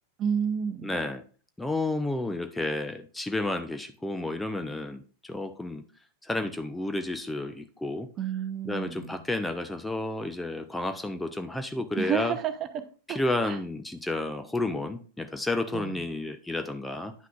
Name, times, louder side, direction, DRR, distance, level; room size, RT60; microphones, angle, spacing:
voice 1, 0.2-0.9 8.2-9.1 12.0-12.5 13.1-13.2 13.5-13.6 15.7-15.9, right 7 dB, 30° right, 10 dB, 0.7 m, -30 dB
voice 2, 0.8-1.2 1.6-5.8 6.2-8.1 8.6-12.4 13.1-17.1, left 2 dB, 5° left, 8 dB, 0.6 m, -31 dB
9.5 x 5.8 x 2.4 m, 0.39 s
figure-of-eight pair, 90°, 0 cm